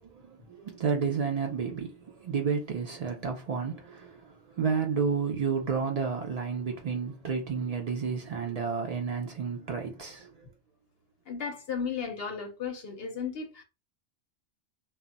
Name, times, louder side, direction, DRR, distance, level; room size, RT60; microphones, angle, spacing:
voice 1, 0.0-10.3, right 5 dB, 70° right, 0.3 m, -31 dB
voice 2, 11.3-13.6, left 6 dB, 65° left, 0.7 m, -35 dB
2.2 x 2.0 x 3.8 m
omnidirectional pair, 1.2 m